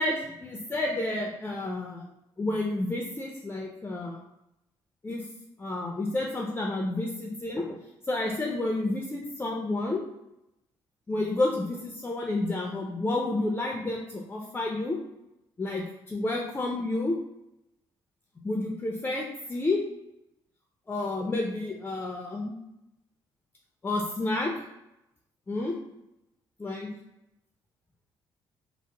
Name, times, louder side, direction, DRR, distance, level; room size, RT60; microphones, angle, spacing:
voice 1, 0.0-2.0 2.4-4.2 5.0-5.2 5.6-7.8 8.1-10.0 11.1-15.0 15.6-17.2 18.4-19.8 20.9-22.5 23.8-24.5 25.5-25.8 26.6-26.9, left 2 dB, 20° left, 0 dB, 0.5 m, -30 dB
2.9 x 2.0 x 3.3 m, 0.87 s
cardioid pair, 80°, 9 cm